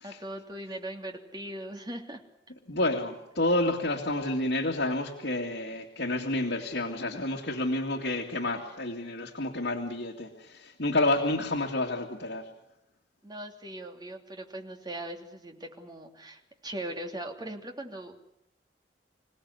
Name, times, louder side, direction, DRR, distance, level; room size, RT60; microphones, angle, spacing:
voice 1, 0.0-2.2 13.2-18.3, right 1 dB, 25° right, 3 dB, 3.0 m, -40 dB
voice 2, 2.7-12.5, left 2 dB, 75° left, -2 dB, 2.5 m, -29 dB
27.0 x 17.5 x 9.7 m, 0.81 s
head